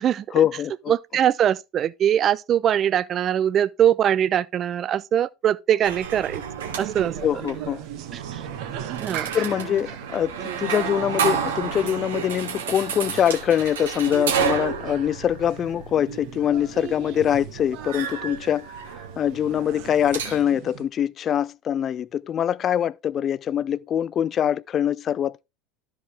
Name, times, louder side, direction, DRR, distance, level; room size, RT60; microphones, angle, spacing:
voice 1, 0.3-0.9 7.2-7.8 9.3-18.7 19.2-25.4, left 9 dB, 35° left, 0.3 m, -24 dB
voice 2, 0.9-6.4 6.8-7.1 9.0-9.3, right 10 dB, 40° right, 0.4 m, -22 dB
sound 1, 5.8-20.4, right 7 dB, 75° right, 1.5 m, -32 dB
sound 2, 6.6-20.8, right 10 dB, 55° right, 0.9 m, -37 dB
12.5 x 4.7 x 3.3 m
figure-of-eight pair, 75°, 0 cm